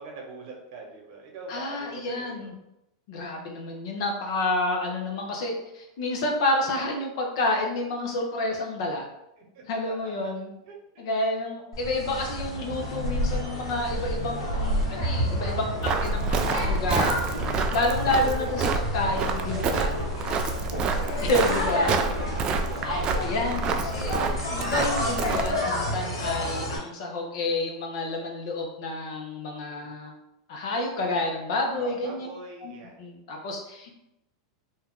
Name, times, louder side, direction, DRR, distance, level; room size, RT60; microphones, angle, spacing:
voice 1, 0.0-2.5 9.4-10.1 10.6-11.0 15.8-16.3 20.7-21.1 21.5-23.0 29.7-30.0 31.7-32.9, right 3 dB, 60° right, 0 dB, 1.0 m, -43 dB
voice 2, 1.5-2.5 3.1-9.1 9.7-10.5 11.0-17.1 17.7-20.1 21.2-21.9 23.2-24.2 24.5-30.1 30.5-32.3 32.6-32.7 33.0-33.9, left 2 dB, 65° left, 1 dB, 0.8 m, -29 dB
sound 1, 11.7-26.8, left 1 dB, 85° left, 1.3 m, -30 dB
Walk footsteps, 15.8-25.6, right 4 dB, 35° right, 0.3 m, -28 dB
2.8 x 2.3 x 3.6 m, 0.87 s
hypercardioid pair, 115°, 3 cm